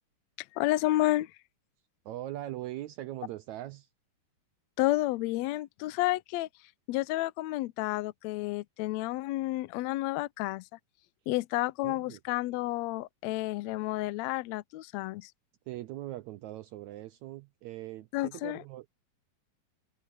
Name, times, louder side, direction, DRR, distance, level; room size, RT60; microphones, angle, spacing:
voice 1, 0.5-1.3 4.8-6.5 6.9-10.6 11.3-15.3 18.1-18.6, left 17 dB, 90° left, 1.5 m, -30 dB
voice 2, 2.0-3.9 11.8-12.2 15.7-18.9, right 14 dB, 80° right, 1.7 m, -41 dB
omnidirectional pair, 3.9 m